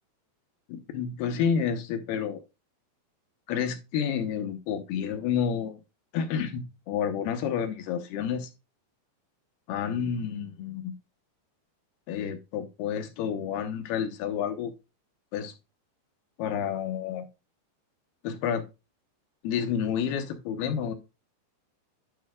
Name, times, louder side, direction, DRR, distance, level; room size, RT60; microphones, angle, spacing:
voice 1, 0.7-2.4 3.5-5.8 6.1-8.5 9.7-10.9 12.1-14.7 15.3-15.5 16.4-17.3 18.2-18.6 19.4-20.9, left 7 dB, 75° left, 6 dB, 2.6 m, -30 dB
11.5 x 5.4 x 2.3 m, 0.26 s
omnidirectional pair, 5.3 m